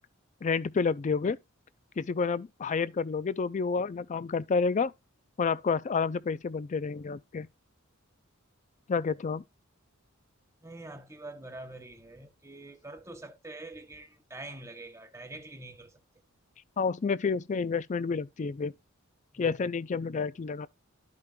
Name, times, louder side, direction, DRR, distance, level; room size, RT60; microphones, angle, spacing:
voice 1, 0.4-1.4 2.0-4.9 5.4-7.5 8.9-9.4 16.8-18.7 19.4-20.7, left 5 dB, 35° left, 0.3 m, -29 dB
voice 2, 10.6-16.0 19.3-19.8, right 2 dB, 15° right, 0.8 m, -45 dB
12.5 x 5.1 x 2.2 m
head